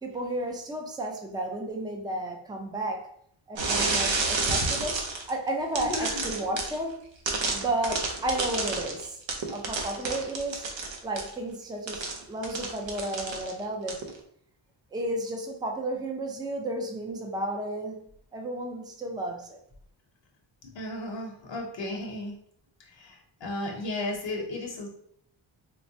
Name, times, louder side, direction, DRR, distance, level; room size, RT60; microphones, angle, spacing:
voice 1, 0.0-3.1 3.5-5.0 5.3-7.0 7.5-9.2 9.5-10.6 11.0-14.0 14.9-18.0 18.3-19.6, right 1 dB, 10° right, 2 dB, 0.4 m, -32 dB
sound 1, 3.6-5.3 5.8-6.8 7.3-11.3 11.9-13.6 13.9-14.1, right 3 dB, 70° right, 0.8 m, -30 dB
voice 2, 5.8-6.2 20.6-22.3 22.9-24.9, left 2 dB, 65° left, 0 dB, 0.8 m, -34 dB
4.5 x 2.1 x 2.6 m, 0.67 s
wide cardioid pair, 105°, 46 cm